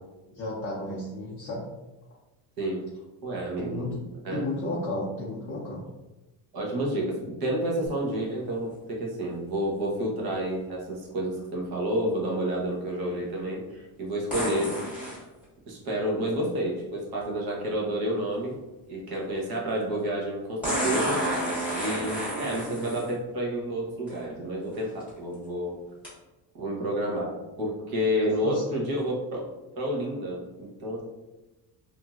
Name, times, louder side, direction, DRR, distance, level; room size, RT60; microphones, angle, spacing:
voice 1, 0.3-1.6 3.6-5.8 28.4-28.9, left 2 dB, 30° left, -6 dB, 0.4 m, -33 dB
voice 2, 2.6-2.9 3.2-3.9 4.2-4.5 6.5-15.2 15.7-18.6 18.9-21.4 21.8-25.8 26.5-29.2 29.4-31.0, equal, 50° right, -2 dB, 0.9 m, -30 dB
sound 1, 14.3-15.2 17.2-17.3 20.6-23.1 24.1-24.2 24.8-25.1 26.0-26.1, right 1 dB, 5° right, 1.1 m, -30 dB
3.0 x 2.6 x 2.3 m, 1.1 s
cardioid pair, 180°, 46 cm